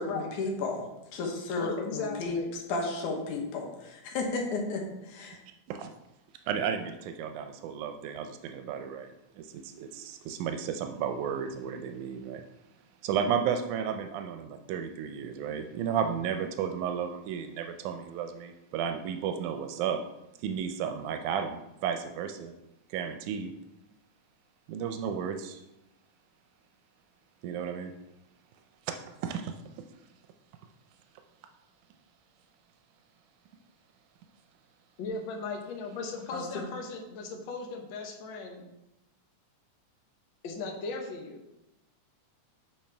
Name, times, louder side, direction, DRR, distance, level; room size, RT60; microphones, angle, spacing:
voice 1, 0.0-2.4 2.7-5.4 36.3-36.7, left 3 dB, 90° left, 1 dB, 2.5 m, -33 dB
voice 2, 1.6-2.5 35.0-38.7 40.4-41.4, left 3 dB, 70° left, 2 dB, 1.1 m, -37 dB
voice 3, 6.5-12.4 13.0-20.0 20.4-22.5 22.9-23.5 24.7-25.6 27.4-27.9 29.2-29.5, right 7 dB, 90° right, 6 dB, 2.0 m, -33 dB
7.2 x 5.0 x 3.3 m, 0.90 s
omnidirectional pair, 3.4 m